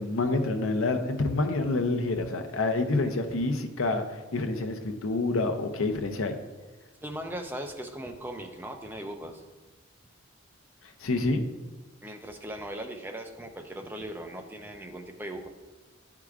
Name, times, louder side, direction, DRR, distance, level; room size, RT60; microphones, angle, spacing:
voice 1, 0.0-4.0 4.3-6.3 11.0-11.4, left 2 dB, 80° left, 5 dB, 0.7 m, -27 dB
voice 2, 7.0-9.4 12.0-15.5, right 1 dB, 10° right, 3 dB, 0.5 m, -38 dB
10.5 x 4.8 x 2.4 m, 1.3 s
head